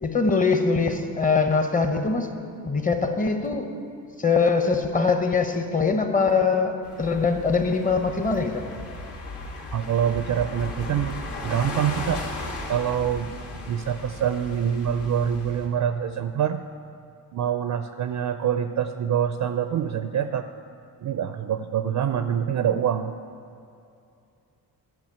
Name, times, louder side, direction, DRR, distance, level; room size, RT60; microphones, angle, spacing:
voice 1, 0.0-2.3 2.6-3.7 4.2-8.7, left 4 dB, 20° left, 6 dB, 0.8 m, -22 dB
sound 1, 6.8-15.7, left 2 dB, 80° left, 2.0 m, -36 dB
voice 2, 9.7-11.2 11.4-12.2 12.7-13.3 13.7-16.6 17.3-20.5 21.0-23.1, right 9 dB, 50° right, 9 dB, 0.4 m, -25 dB
11.0 x 5.3 x 8.5 m, 2.5 s
cardioid pair, 115°, 39 cm